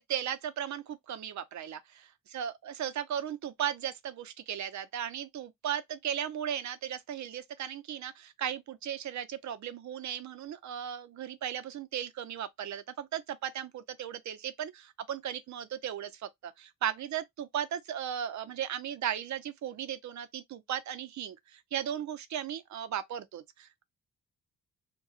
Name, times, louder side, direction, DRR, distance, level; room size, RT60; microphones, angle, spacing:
voice 1, 0.0-23.8, right 9 dB, 60° right, 0.6 m, -36 dB
3.8 x 2.3 x 2.4 m
wide cardioid pair, 155°, 33 cm